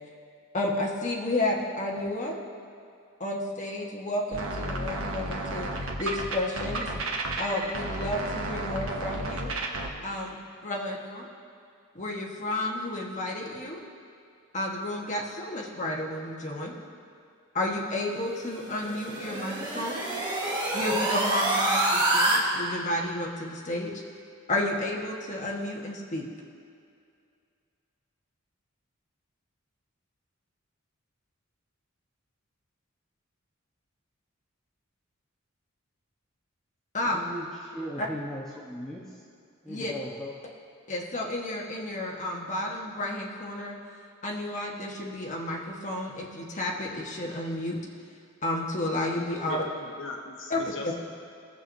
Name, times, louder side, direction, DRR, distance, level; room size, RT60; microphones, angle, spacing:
voice 1, 0.5-2.4 3.2-5.7 6.0-6.9 7.4-9.6 10.0-10.4 10.6-11.3 11.9-13.8 14.5-16.8 17.5-20.0 20.7-23.9 24.5-26.3 36.9-37.2 38.0-38.1 39.7-39.9 40.9-43.8 44.2-47.8 48.4-49.6 50.5-50.6, left 1 dB, 35° left, -1 dB, 1.3 m, -31 dB
sound 1, 4.3-9.9, right 2 dB, 85° right, 1.2 m, -32 dB
sound 2, 18.4-22.4, right 2 dB, 20° right, 1.4 m, -27 dB
voice 2, 37.1-39.2 39.6-40.3, equal, 5° left, -7 dB, 1.0 m, -38 dB
voice 3, 49.3-50.9, left 3 dB, 65° left, 1 dB, 1.0 m, -39 dB
21.0 x 7.7 x 2.7 m, 2.4 s
head